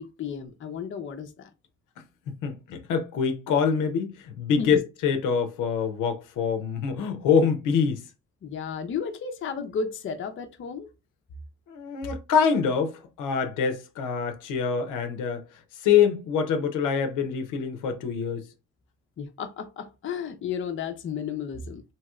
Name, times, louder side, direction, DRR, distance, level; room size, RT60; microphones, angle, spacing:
voice 1, 0.0-1.5 4.6-4.8 8.4-10.9 19.2-21.8, left 6 dB, 40° left, 0.5 m, -33 dB
voice 2, 2.3-8.0 11.7-18.4, left 6 dB, 85° left, 0.6 m, -25 dB
2.9 x 2.8 x 2.3 m
cardioid pair, 90°, 30 cm